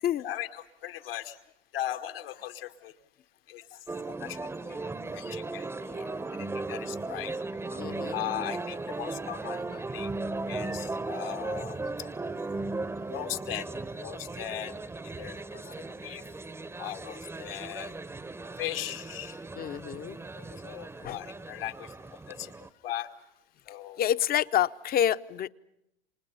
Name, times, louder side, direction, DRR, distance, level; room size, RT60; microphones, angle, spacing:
voice 1, 0.2-1.4 1.7-2.9 3.5-3.6 4.1-4.7 5.1-5.7 6.1-7.3 8.1-9.6 9.9-10.1 10.5-11.8 13.1-13.7 13.9-14.7 15.2-15.6 16.0-16.2 16.8-17.9 18.6-19.4 20.6-21.9 22.3-22.5 22.8-23.1 23.7-24.0, left 12 dB, 80° left, 6 dB, 2.3 m, -38 dB
sound 1, 3.9-22.7, right 3 dB, 10° right, 0.8 m, -37 dB
voice 2, 7.7-8.2 9.7-9.8 15.5-15.7 19.6-20.6 21.0-21.2 24.0-25.5, left 10 dB, 30° left, 14 dB, 0.8 m, -29 dB
29.5 x 26.5 x 5.6 m, 0.83 s
hypercardioid pair, 100°, 29 cm